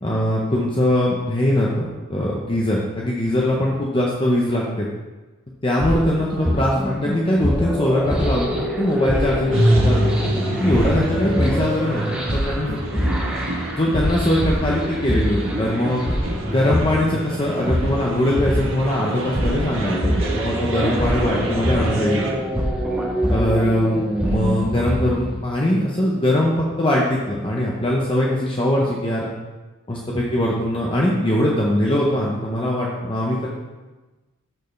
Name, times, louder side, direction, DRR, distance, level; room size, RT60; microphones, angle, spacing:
voice 1, 0.0-4.9 5.6-9.6 9.8-10.1 10.5-13.0 13.7-16.0 16.5-22.3 23.3-29.3 29.9-33.5, left 1 dB, 25° left, -3 dB, 0.8 m, -21 dB
sound 1, 5.8-25.4, equal, 5° right, 0.9 m, -24 dB
sound 2, 9.5-22.3, right 1 dB, 65° right, 1.5 m, -26 dB
13.5 x 4.5 x 3.3 m, 1.2 s
head